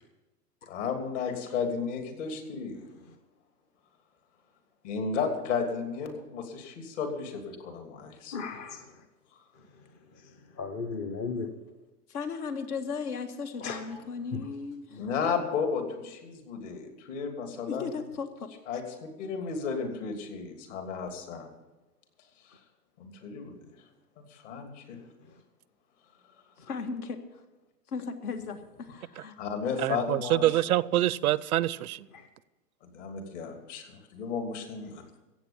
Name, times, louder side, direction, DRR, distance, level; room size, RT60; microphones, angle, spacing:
voice 1, 0.7-2.8 4.8-8.4 14.9-17.9 18.7-21.5 22.5-22.6 23.0-23.6 24.2-25.0 29.4-30.7 32.8-35.0, left 5 dB, 50° left, 3.0 m, -33 dB
voice 2, 8.3-8.9 10.6-11.5 13.6-14.0 14.3-14.4 32.1-32.3, left 5 dB, 20° left, 0.6 m, -35 dB
voice 3, 12.1-15.0 17.7-18.5 26.7-27.4 27.9-29.4, left 5 dB, 65° left, 1.8 m, -36 dB
voice 4, 29.8-32.1, right 14 dB, 65° right, 0.5 m, -26 dB
15.5 x 8.0 x 7.1 m
hypercardioid pair, 145°, 48 cm